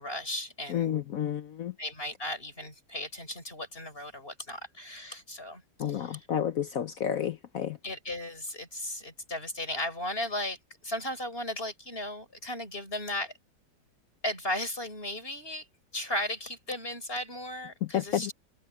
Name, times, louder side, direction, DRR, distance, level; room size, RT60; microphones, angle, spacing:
voice 1, 0.0-1.0 1.8-5.6 5.9-6.2 7.8-10.6 10.8-13.3 14.2-15.7 15.9-18.3, left 1 dB, 30° left, 6.2 m, -36 dB
voice 2, 0.7-1.7 5.8-7.8 17.8-18.3, left 9 dB, 60° left, 1.0 m, -30 dB
omnidirectional pair, 2.0 m